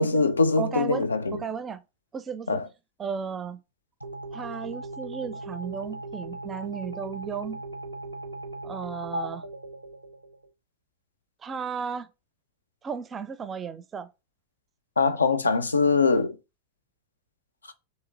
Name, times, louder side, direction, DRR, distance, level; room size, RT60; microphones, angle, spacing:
voice 1, 0.0-1.4 2.5-2.7 15.0-16.4 17.7-17.8, left 4 dB, 75° left, 0.4 m, -23 dB
voice 2, 0.6-1.8 2.1-2.6 3.0-3.6 4.3-7.6 8.6-9.4 11.4-12.1 12.8-14.1, right 6 dB, 20° right, 0.4 m, -34 dB
sound 1, 4.0-10.5, right 2 dB, 85° right, 0.5 m, -38 dB
3.1 x 2.8 x 3.7 m
figure-of-eight pair, 90°, 0 cm